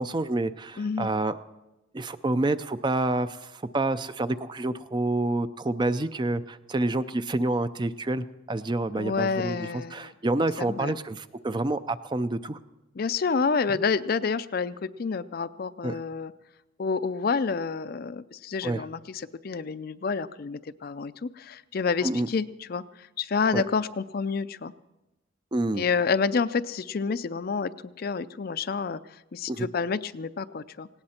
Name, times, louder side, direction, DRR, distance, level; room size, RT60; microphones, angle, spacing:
voice 1, 0.0-1.3 1.9-12.6 13.7-13.8 15.8-16.0 18.6-18.8 22.0-22.3 23.5-23.6 25.5-25.9 29.5-29.7, right 2 dB, 20° right, 12 dB, 0.4 m, -28 dB
voice 2, 0.8-1.1 9.0-10.1 10.6-10.9 13.0-16.3 16.8-24.7 25.8-27.7 28.0-30.9, left 5 dB, 50° left, 14 dB, 0.4 m, -29 dB
18.5 x 17.5 x 4.3 m, 1.0 s
head